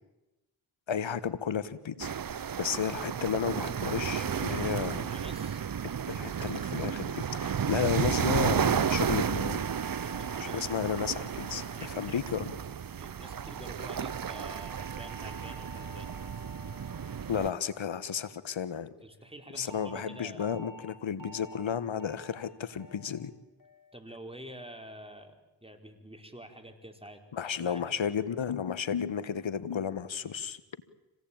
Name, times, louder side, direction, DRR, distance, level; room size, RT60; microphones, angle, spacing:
voice 1, 0.9-5.1 6.1-9.6 10.4-12.5 17.3-18.9 19.5-23.3 27.3-30.6, left 7 dB, 75° left, 15 dB, 1.5 m, -33 dB
sound 1, 2.0-17.5, right 8 dB, 45° right, 0.8 m, -32 dB
voice 2, 4.0-4.7 5.1-5.6 9.9-10.9 11.7-12.2 13.0-16.1 19.0-20.4 23.9-27.2 27.6-27.9, right 1 dB, 10° right, 5 dB, 4.8 m, -47 dB
sound 2, 8.5-13.0 14.1-18.6 19.7-20.0 20.4-20.8 21.2-21.6 22.0-22.4 22.8-23.2 23.6-24.0, right 1 dB, 40° left, 5.2 m, -50 dB
26.0 x 18.0 x 8.9 m, 1.0 s
cardioid pair, 40°, 47 cm